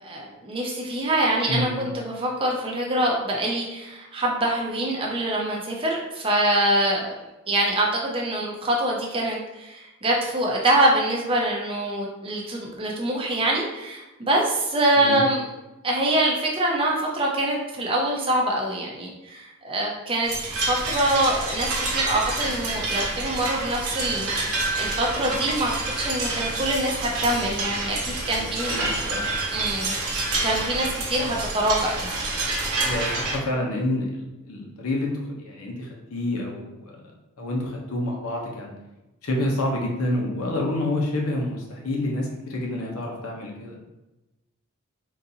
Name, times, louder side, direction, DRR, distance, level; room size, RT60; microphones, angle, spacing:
voice 1, 0.0-7.1 7.5-15.4 15.8-25.7 26.0-28.7 29.5-29.9 30.4-32.1, right 1 dB, 25° right, -2 dB, 0.6 m, -25 dB
voice 2, 1.5-1.8 15.0-15.3 28.2-29.3 31.2-31.3 32.8-37.0 37.4-38.7 39.2-43.8, left 1 dB, 85° left, 0 dB, 0.8 m, -28 dB
sound 1, 20.2-33.4, right 2 dB, 85° right, 1.0 m, -28 dB
3.8 x 2.6 x 2.7 m, 1.0 s
head